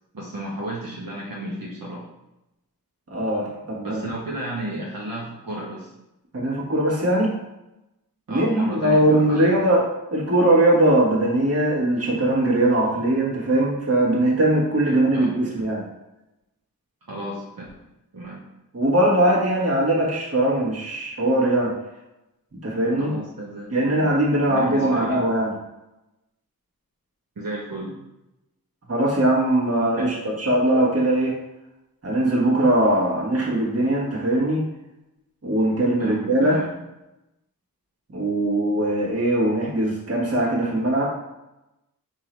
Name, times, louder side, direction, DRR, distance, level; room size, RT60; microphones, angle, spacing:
voice 1, 0.1-2.1 3.8-5.9 8.3-9.8 14.8-15.4 17.1-17.8 18.1-18.4 23.0-24.0 24.5-25.2 27.4-28.0 29.9-30.2 36.0-36.7, right 1 dB, 70° right, -5 dB, 1.0 m, -33 dB
voice 2, 3.1-4.0 6.3-7.3 8.3-9.8 10.1-15.8 18.7-21.7 22.6-23.1 23.7-25.5 28.9-31.4 32.0-34.6 35.4-36.7 38.1-41.1, right 1 dB, 40° right, -5 dB, 1.5 m, -20 dB
3.7 x 2.8 x 4.4 m, 0.92 s
wide cardioid pair, 75°, 36 cm